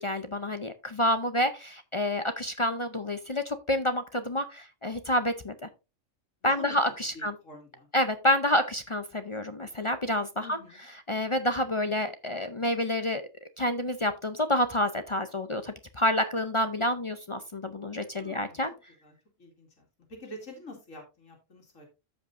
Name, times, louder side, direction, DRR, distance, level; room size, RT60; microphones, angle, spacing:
voice 1, 0.0-5.5 6.4-7.3 7.9-10.6 11.1-13.2 13.6-18.7, left 1 dB, 35° left, 9 dB, 0.5 m, -28 dB
voice 2, 6.4-6.7 7.1-7.9 10.4-10.8 18.2-18.6 19.0-19.1 19.4-19.7 20.1-21.9, left 1 dB, 85° left, 1 dB, 2.6 m, -46 dB
13.5 x 5.3 x 2.6 m, 0.27 s
omnidirectional pair, 1.3 m